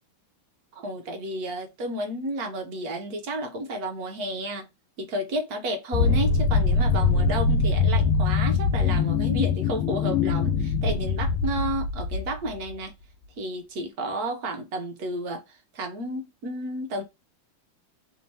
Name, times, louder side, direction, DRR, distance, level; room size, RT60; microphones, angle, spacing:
voice 1, 0.7-4.7 5.0-12.9 13.4-15.4 15.7-17.0, right 1 dB, 55° right, 1.2 m, -31 dB
sound 1, 5.9-12.7, left 5 dB, 90° left, 1.5 m, -23 dB
3.6 x 2.7 x 3.2 m
omnidirectional pair, 2.2 m